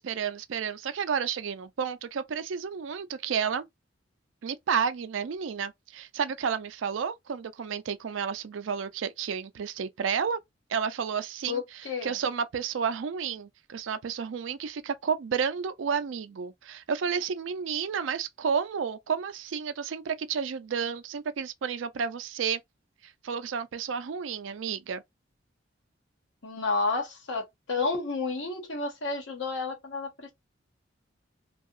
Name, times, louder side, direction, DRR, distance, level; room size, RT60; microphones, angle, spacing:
voice 1, 0.0-3.7 4.4-10.4 10.7-22.6 23.0-25.0, right 6 dB, 85° right, 0.4 m, -31 dB
voice 2, 11.4-12.2 26.4-30.3, left 3 dB, 75° left, 1.1 m, -31 dB
2.7 x 2.3 x 2.4 m
head